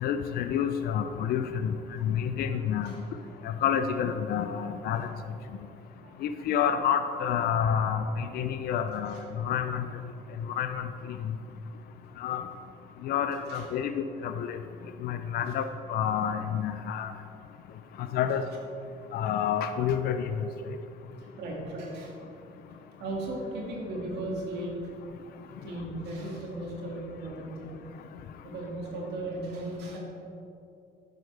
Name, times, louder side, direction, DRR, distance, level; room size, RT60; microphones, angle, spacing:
voice 1, 0.0-1.7 2.0-2.9 3.4-5.1 6.2-9.8 10.6-11.3 12.2-12.4 13.0-14.6 15.0-17.1 18.1-18.4 19.1-20.5, left 8 dB, 65° left, 8 dB, 0.5 m, -29 dB
voice 2, 2.8-3.6 4.9-5.1 5.7-5.8 6.0-6.2 9.1-9.2 13.5-13.7 21.2-22.4 22.7-24.7 25.6-27.7 28.4-30.0, right 1 dB, 80° right, -2 dB, 2.1 m, -37 dB
10.5 x 7.5 x 3.3 m, 2.7 s
cardioid pair, 110°, 17 cm